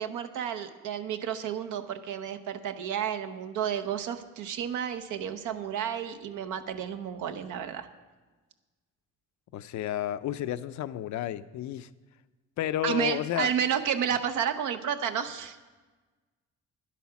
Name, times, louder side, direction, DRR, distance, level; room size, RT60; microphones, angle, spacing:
voice 1, 0.0-7.9 12.8-15.6, right 8 dB, 80° right, 8 dB, 0.8 m, -31 dB
voice 2, 9.5-11.9 12.6-13.5, left 12 dB, 70° left, 14 dB, 0.5 m, -31 dB
10.5 x 8.4 x 5.8 m, 1.3 s
cardioid pair, 90°, 30 cm